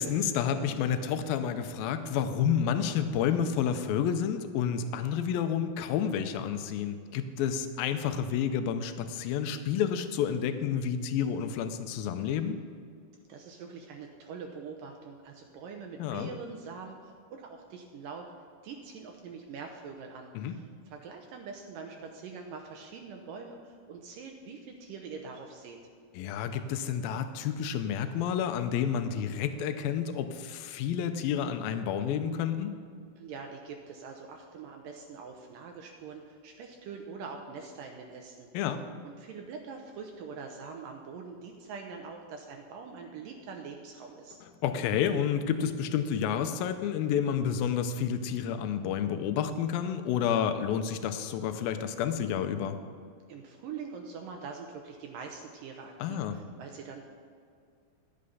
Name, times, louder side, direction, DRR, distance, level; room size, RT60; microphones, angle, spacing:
voice 1, 0.0-12.6 16.0-16.3 20.4-20.6 26.2-32.7 38.5-38.8 44.6-52.8 56.0-56.4, left 8 dB, 80° left, 9 dB, 2.4 m, -30 dB
voice 2, 13.3-18.3 18.6-25.8 33.2-38.5 39.0-44.4 53.3-57.0, right 5 dB, 75° right, 2 dB, 2.2 m, -44 dB
12.0 x 8.7 x 5.5 m, 2.2 s
omnidirectional pair, 4.4 m